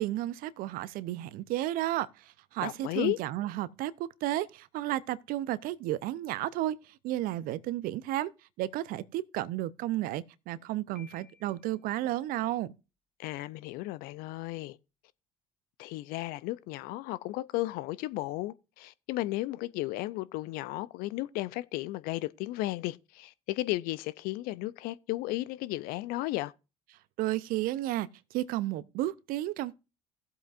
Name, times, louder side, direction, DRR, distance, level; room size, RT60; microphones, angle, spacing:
voice 1, 0.0-8.3 8.6-12.7 27.2-29.7, right 15 dB, 60° right, 0.6 m, -33 dB
voice 2, 2.6-3.2 13.2-14.8 15.8-26.5, left 18 dB, 65° left, 0.5 m, -34 dB
Piano, 10.9-11.9, left 5 dB, 5° left, 2.3 m, -57 dB
17.0 x 7.9 x 2.5 m
hypercardioid pair, 60°, 17 cm